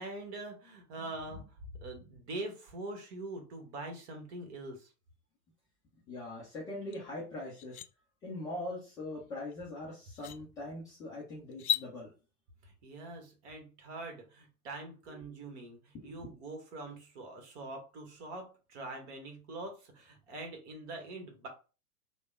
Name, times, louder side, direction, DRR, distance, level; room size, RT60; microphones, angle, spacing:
voice 1, 0.0-4.9 12.6-21.5, right 2 dB, 45° right, 4 dB, 1.3 m, -44 dB
voice 2, 0.9-1.4 6.1-7.8 8.2-12.1 15.1-15.3 15.9-16.3, left 2 dB, 10° left, -7 dB, 0.4 m, -42 dB
sound 1, 6.9-7.0 7.4-7.9 9.5-9.6 10.1-10.4 11.5-11.9, left 11 dB, 65° left, 0.5 m, -34 dB
3.3 x 2.1 x 3.6 m, 0.33 s
figure-of-eight pair, 100°, 47 cm